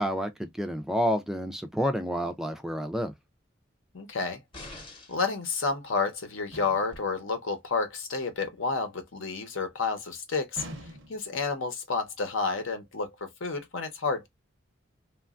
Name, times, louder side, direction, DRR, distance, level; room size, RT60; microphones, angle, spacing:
voice 1, 0.0-3.1, equal, ahead, 0.3 m, -29 dB
voice 2, 3.9-4.4 5.1-10.6 11.1-14.3, left 4 dB, 80° left, 0.9 m, -30 dB
sound 1, 4.5-5.4 6.9-7.0, left 2 dB, 25° left, 0.8 m, -44 dB
sound 2, 6.5-7.1 10.5-11.4, right 1 dB, 65° right, 0.6 m, -43 dB
3.0 x 2.3 x 2.4 m
head